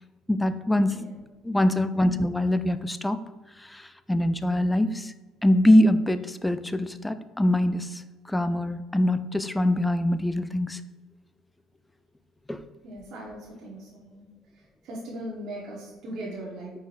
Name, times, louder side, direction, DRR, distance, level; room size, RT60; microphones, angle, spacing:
voice 1, 0.3-1.0 1.4-3.2 3.6-5.1 5.4-8.0 8.3-10.8 12.5-12.6, left 1 dB, 10° left, 12 dB, 0.3 m, -23 dB
voice 2, 12.8-14.2 14.8-16.7, right 1 dB, 65° right, -4 dB, 1.1 m, -38 dB
4.8 x 4.5 x 2.5 m, 1.2 s
supercardioid pair, 85°, 0 cm